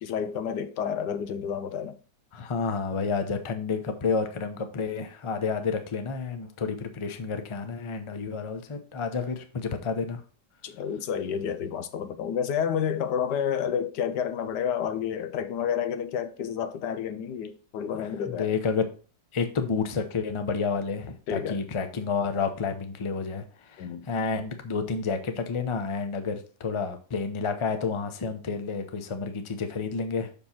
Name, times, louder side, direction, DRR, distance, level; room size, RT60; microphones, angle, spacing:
voice 1, 0.0-2.0 10.6-18.5 21.3-21.6 23.8-24.1, left 8 dB, 85° left, 1.4 m, -30 dB
voice 2, 2.3-10.2 17.9-18.9 19.3-30.3, left 5 dB, 30° left, 0.6 m, -30 dB
6.4 x 5.4 x 4.3 m
omnidirectional pair, 1.8 m